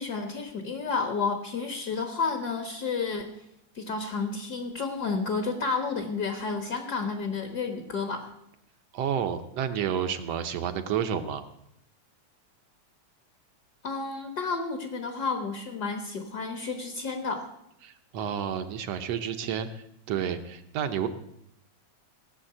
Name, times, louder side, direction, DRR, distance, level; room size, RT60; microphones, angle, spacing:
voice 1, 0.0-3.3 3.7-8.3 13.8-17.5, left 4 dB, 45° left, 6 dB, 1.4 m, -31 dB
voice 2, 8.9-11.4 17.8-21.1, right 8 dB, 70° right, 9 dB, 1.7 m, -30 dB
17.5 x 7.5 x 8.8 m, 0.78 s
omnidirectional pair, 3.5 m